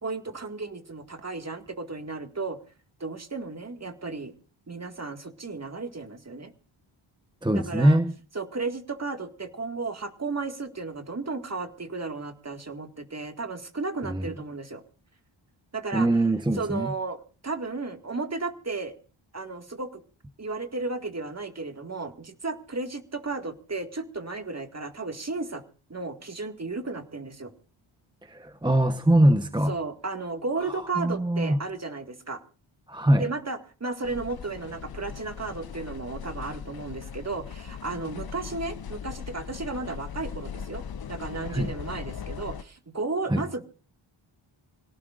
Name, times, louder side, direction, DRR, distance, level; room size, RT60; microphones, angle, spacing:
voice 1, 0.0-2.6 3.0-4.3 4.7-6.5 7.5-8.0 8.4-14.8 15.7-16.1 16.5-18.9 19.3-20.0 20.4-25.6 25.9-27.5 29.7-32.4 33.2-40.8 41.1-43.6, right 3 dB, 30° right, 6 dB, 2.1 m, -34 dB
voice 2, 7.4-8.1 14.0-14.3 15.9-16.9 28.2-29.7 31.0-31.6 32.9-33.3 41.5-41.7 43.3-43.4, right 1 dB, 10° right, 8 dB, 1.0 m, -22 dB
sound 1, 34.0-42.6, left 7 dB, 50° left, 0.7 m, -39 dB
26.5 x 17.5 x 2.6 m, 0.38 s
wide cardioid pair, 90°, 49 cm